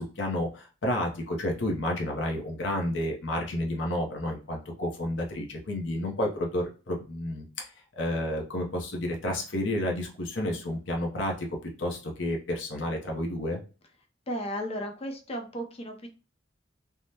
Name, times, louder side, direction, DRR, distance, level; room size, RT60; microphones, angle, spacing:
voice 1, 0.0-7.7 8.0-11.5 11.8-13.6, left 1 dB, 70° left, 0 dB, 0.7 m, -31 dB
voice 2, 14.3-16.1, equal, 30° left, 3 dB, 0.6 m, -34 dB
3.4 x 2.0 x 2.8 m, 0.34 s
head